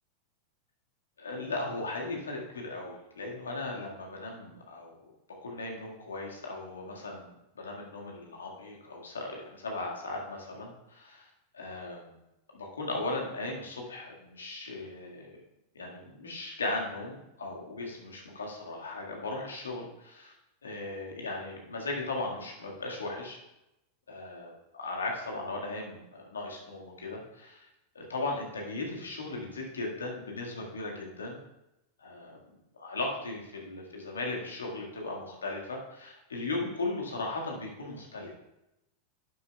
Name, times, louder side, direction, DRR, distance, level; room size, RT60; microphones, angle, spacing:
voice 1, 1.2-4.9 5.4-11.3 11.5-12.2 12.5-15.3 15.7-20.3 20.6-23.4 24.1-27.7 27.9-31.4 32.0-32.4 32.7-38.3, left 2 dB, 80° left, -1 dB, 1.7 m, -37 dB
11.0 x 8.7 x 2.3 m, 0.90 s
figure-of-eight pair, 90°, 0 cm